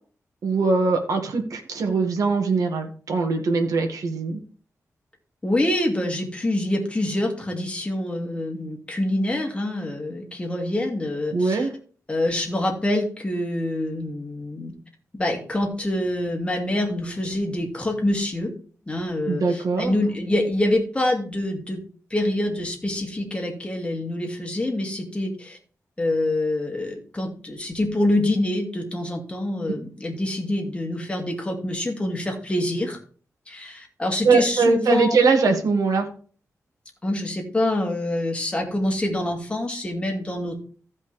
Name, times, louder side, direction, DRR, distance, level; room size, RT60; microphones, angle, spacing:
voice 1, 0.4-4.4 11.3-11.7 19.3-19.9 34.2-36.1, right 4 dB, 85° right, 3 dB, 1.9 m, -21 dB
voice 2, 5.4-11.7 12.1-14.7 15.1-18.5 18.9-21.8 22.1-25.6 26.0-33.0 33.5-35.2 37.0-40.6, left 1 dB, 20° left, 1 dB, 2.4 m, -26 dB
15.5 x 5.4 x 3.3 m, 0.43 s
wide cardioid pair, 120°, 6 cm